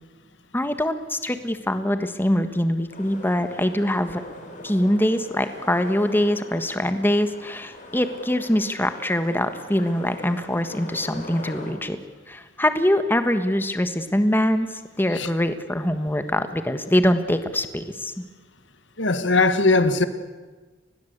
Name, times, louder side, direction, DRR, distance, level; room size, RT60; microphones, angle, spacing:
voice 1, 0.5-4.2 4.6-12.0 12.3-18.1, left 1 dB, 10° left, 9 dB, 1.4 m, -23 dB
sound 1, 2.9-11.7, left 1 dB, 45° left, 5.5 m, -41 dB
voice 2, 19.0-20.1, left 3 dB, 75° left, 11 dB, 1.7 m, -19 dB
29.5 x 21.0 x 8.1 m, 1.3 s
head